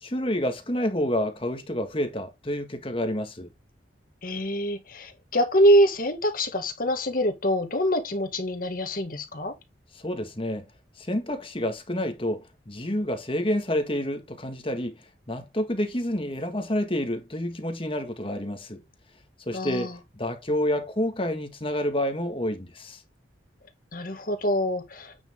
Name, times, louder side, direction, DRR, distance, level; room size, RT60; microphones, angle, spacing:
voice 1, 0.0-3.5 9.9-10.6 11.0-14.9 15.3-18.8 19.5-23.0, left 1 dB, 30° left, 1.7 m, -29 dB
voice 2, 4.2-9.5 19.5-19.9 23.9-25.1, equal, 50° left, 1.9 m, -24 dB
8.8 x 6.0 x 3.6 m
head